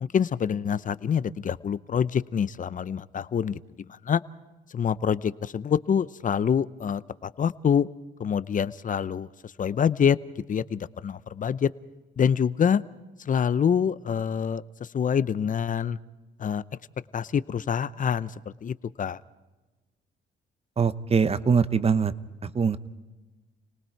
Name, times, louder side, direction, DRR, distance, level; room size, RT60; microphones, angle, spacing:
voice 1, 0.0-3.6 3.9-4.2 4.7-7.9 8.2-10.2 10.5-11.7 12.2-12.8 13.3-16.0 16.4-16.6 17.1-18.3 18.6-19.2, left 7 dB, 40° left, 16 dB, 0.7 m, -26 dB
voice 2, 20.8-22.1 22.4-22.8, right 6 dB, 30° right, 14 dB, 0.9 m, -23 dB
29.5 x 19.0 x 4.6 m, 1.2 s
cardioid pair, 90°, 20 cm